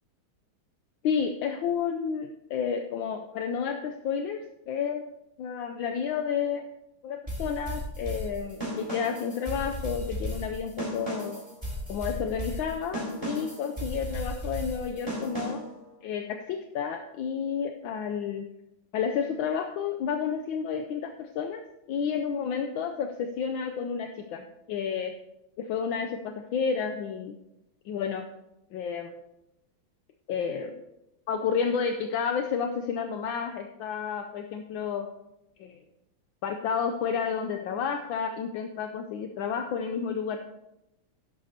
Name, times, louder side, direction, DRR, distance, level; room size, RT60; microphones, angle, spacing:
voice 1, 1.0-4.4 4.7-5.1 5.4-6.6 7.0-11.4 11.9-15.6 16.0-18.4 18.9-21.6 21.9-25.1 25.6-27.3 27.8-28.3 28.7-29.1 30.3-30.7 31.3-35.1 35.6-35.8 36.4-40.4, left 6 dB, 75° left, 5 dB, 1.3 m, -31 dB
sound 1, 7.3-15.8, equal, 10° right, 3.8 m, -35 dB
11.5 x 11.0 x 2.8 m, 0.88 s
omnidirectional pair, 2.3 m